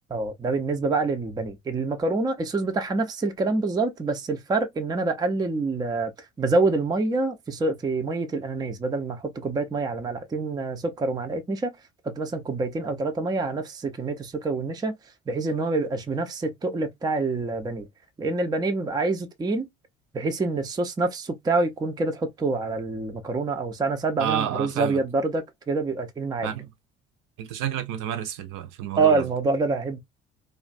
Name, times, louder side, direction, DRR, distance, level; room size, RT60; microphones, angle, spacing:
voice 1, 0.1-6.1 6.4-11.7 12.0-14.9 15.3-17.9 18.2-19.7 20.1-26.5 29.0-30.0, right 3 dB, 10° right, 0.4 m, -26 dB
voice 2, 24.2-25.0 26.4-26.7 27.4-29.3, right 9 dB, 55° right, 0.6 m, -30 dB
2.4 x 2.2 x 2.5 m
hypercardioid pair, 55°, 38 cm